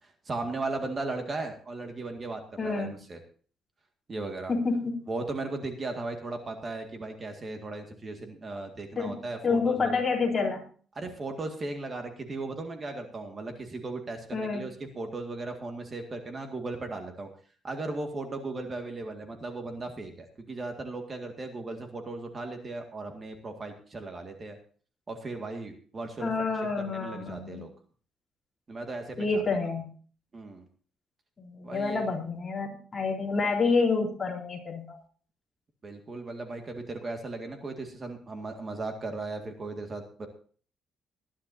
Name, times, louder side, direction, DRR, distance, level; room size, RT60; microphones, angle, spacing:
voice 1, 0.0-3.2 4.1-4.5 5.1-10.0 11.0-17.3 17.6-24.6 25.1-26.5 26.9-27.7 28.7-29.4 30.3-30.6 31.6-32.1 35.8-40.3, right 3 dB, 30° right, 4 dB, 2.0 m, -37 dB
voice 2, 2.6-3.0 4.5-5.0 9.0-10.6 14.3-14.6 26.2-27.6 29.2-29.9 31.4-35.0, left 4 dB, 25° left, -2 dB, 3.9 m, -28 dB
20.0 x 11.5 x 2.8 m, 0.42 s
cardioid pair, 135°, 0 cm